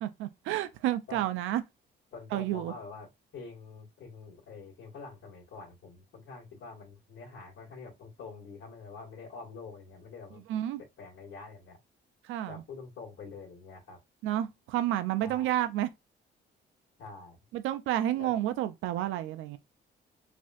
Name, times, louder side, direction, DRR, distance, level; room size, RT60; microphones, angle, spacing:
voice 1, 0.0-1.6 2.3-2.7 10.5-10.8 12.2-12.6 14.2-15.9 17.5-19.6, right 13 dB, 90° right, 0.4 m, -30 dB
voice 2, 2.1-10.4 11.0-11.8 12.5-14.0 15.2-15.5 17.0-17.4 18.2-18.3, left 4 dB, 70° left, 1.8 m, -46 dB
3.3 x 2.5 x 2.4 m
cardioid pair, 90°, 20 cm